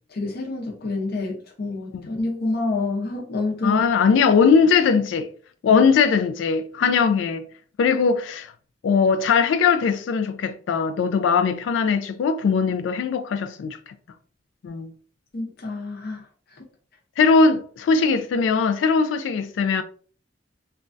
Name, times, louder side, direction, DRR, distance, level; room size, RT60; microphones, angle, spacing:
voice 1, 0.1-3.8 5.7-5.8 6.8-6.9 15.3-16.3 16.5-16.6, left 3 dB, 55° left, 0.7 m, -28 dB
voice 2, 3.6-5.3 5.6-7.5 7.8-8.5 8.8-13.8 14.6-14.9 17.2-19.8, left 5 dB, 75° left, 0.3 m, -20 dB
3.1 x 2.3 x 2.5 m
head